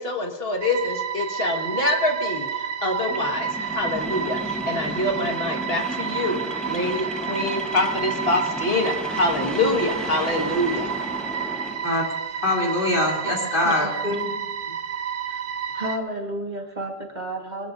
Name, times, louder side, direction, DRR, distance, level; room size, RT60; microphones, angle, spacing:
voice 1, 0.0-10.9, left 2 dB, 70° left, 2 dB, 2.0 m, -25 dB
sound 1, 0.6-16.0, right 8 dB, 65° right, 1.0 m, -30 dB
sound 2, 3.0-11.9, equal, ahead, 1.0 m, -34 dB
voice 2, 12.4-14.3, left 2 dB, 55° left, -1 dB, 3.5 m, -23 dB
voice 3, 13.6-14.2 15.3-15.4 15.7-17.7, right 1 dB, 45° right, 0 dB, 1.8 m, -32 dB
23.0 x 20.5 x 2.7 m, 1.0 s
omnidirectional pair, 1.0 m